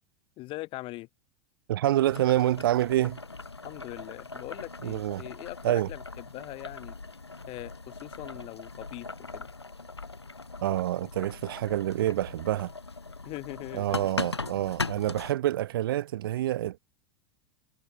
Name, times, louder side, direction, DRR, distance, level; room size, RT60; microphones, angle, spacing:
voice 1, 0.4-1.1 3.6-7.0 7.5-9.5 13.2-14.1, left 20 dB, 40° left, 4.4 m, -41 dB
voice 2, 1.7-3.2 4.8-5.2 5.6-5.9 10.6-12.7 13.7-16.8, right 13 dB, 60° right, 0.8 m, -27 dB
Boiling, 2.1-15.3, left 3 dB, 85° left, 2.7 m, -40 dB
figure-of-eight pair, 85°, 13 cm